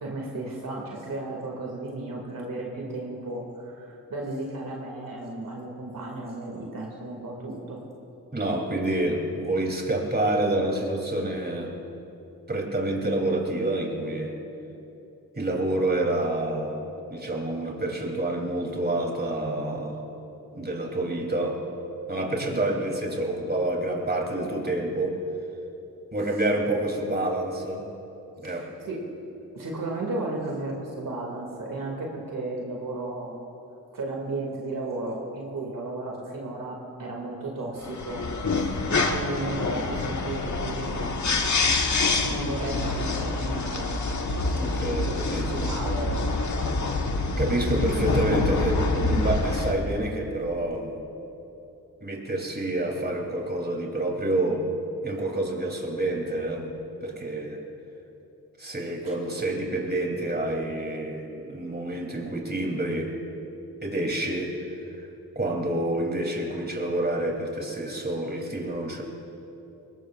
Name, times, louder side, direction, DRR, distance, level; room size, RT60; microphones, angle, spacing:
voice 1, 0.0-7.8 22.3-22.6 28.4-29.1 29.5-33.4 33.9-41.6 42.1-44.0 44.9-46.4 59.0-59.1, right 2 dB, 50° right, -2 dB, 2.6 m, -34 dB
voice 2, 8.3-11.7 12.5-14.3 15.4-16.7 17.1-20.0 20.5-21.6 22.1-25.2 26.1-27.8 28.4-28.7 38.6-38.9 44.5-45.8 47.4-50.9 52.0-54.7 55.0-56.7 57.0-57.6 58.6-63.1 63.8-64.6 65.3-69.0, right 1 dB, 25° right, 0 dB, 3.4 m, -28 dB
sound 1, 37.8-49.7, left 3 dB, 45° left, 1.5 m, -26 dB
21.5 x 19.0 x 2.6 m, 2.9 s
hypercardioid pair, 40°, 41 cm